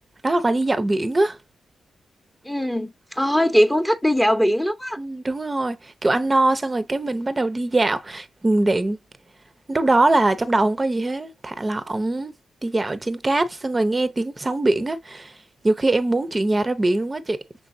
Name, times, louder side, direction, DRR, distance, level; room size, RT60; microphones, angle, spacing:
voice 1, 0.2-1.4 5.0-9.0 9.7-12.3 12.6-15.4 15.6-17.4, right 2 dB, 30° right, 0.6 m, -22 dB
voice 2, 2.4-5.0, equal, 5° left, 0.7 m, -20 dB
6.0 x 3.4 x 2.6 m
hypercardioid pair, 45°, 0 cm